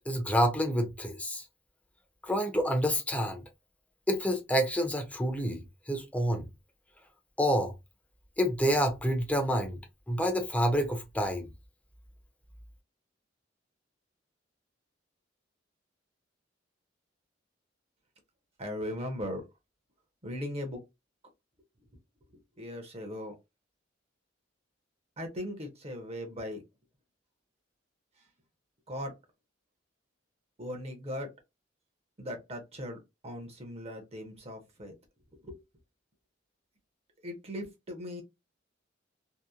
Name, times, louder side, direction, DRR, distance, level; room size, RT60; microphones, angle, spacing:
voice 1, 0.1-1.4 2.2-3.4 4.1-6.5 7.4-7.7 8.4-9.8 10.1-11.5, equal, 10° left, 0.6 m, -28 dB
voice 2, 18.6-19.4 20.2-20.8 22.6-23.3 25.2-26.6 28.9-29.1 30.6-31.3 32.2-33.0 33.2-35.0 35.4-35.6 37.2-38.2, equal, 35° right, 0.8 m, -38 dB
2.8 x 2.1 x 2.3 m
head